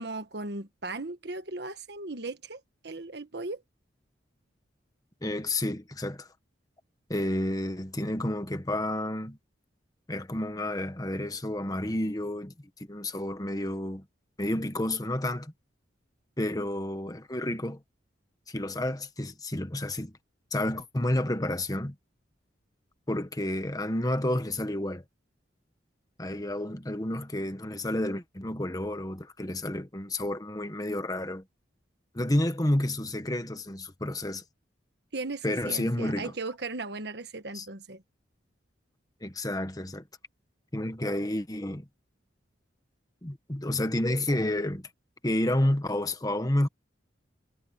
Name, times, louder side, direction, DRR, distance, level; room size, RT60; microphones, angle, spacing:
voice 1, 0.0-3.6 35.1-38.0, right 3 dB, 60° right, 1.4 m, -37 dB
voice 2, 5.2-6.3 7.1-9.4 10.1-12.5 12.9-14.0 14.4-15.5 16.4-17.8 18.5-20.1 20.5-21.9 23.1-25.0 26.2-31.4 32.1-34.4 35.4-36.3 37.5-37.7 39.2-40.0 40.7-41.9 43.2-44.9 45.2-46.7, left 1 dB, 20° left, 1.3 m, -30 dB
head